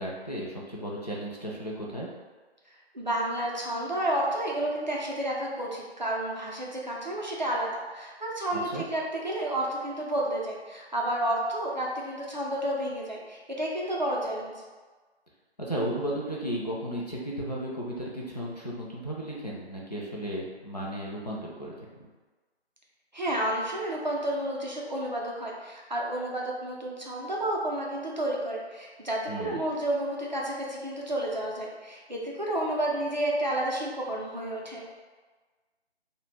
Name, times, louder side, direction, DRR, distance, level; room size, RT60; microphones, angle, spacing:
voice 1, 0.0-2.1 8.7-8.8 15.6-22.1 29.3-29.6, right 1 dB, 40° left, -5 dB, 0.4 m, -34 dB
voice 2, 2.9-14.5 23.1-34.8, right 1 dB, 45° right, -3 dB, 0.4 m, -31 dB
2.6 x 2.0 x 3.2 m, 1.4 s
figure-of-eight pair, 160°, 33 cm